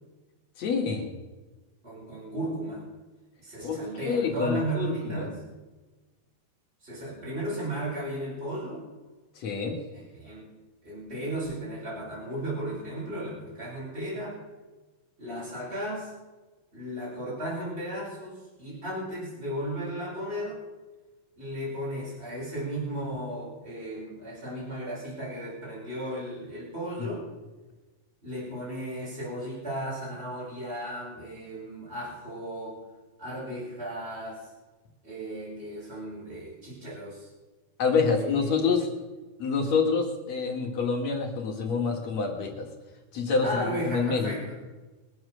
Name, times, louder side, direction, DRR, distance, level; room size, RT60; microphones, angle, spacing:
voice 1, 0.6-1.1 3.6-5.3 9.4-9.8 27.0-27.1 37.8-38.9 39.4-42.7 43.1-44.3, left 5 dB, 55° left, 1 dB, 3.0 m, -27 dB
voice 2, 1.8-2.9 3.4-5.4 6.8-8.8 9.9-10.5 10.8-14.4 15.2-16.1 16.7-20.6 21.4-27.3 28.2-32.8 33.2-34.4 35.0-37.3 38.1-38.6 43.4-44.5, right 1 dB, 15° right, -7 dB, 5.4 m, -35 dB
22.5 x 7.9 x 6.4 m, 1.2 s
omnidirectional pair, 3.9 m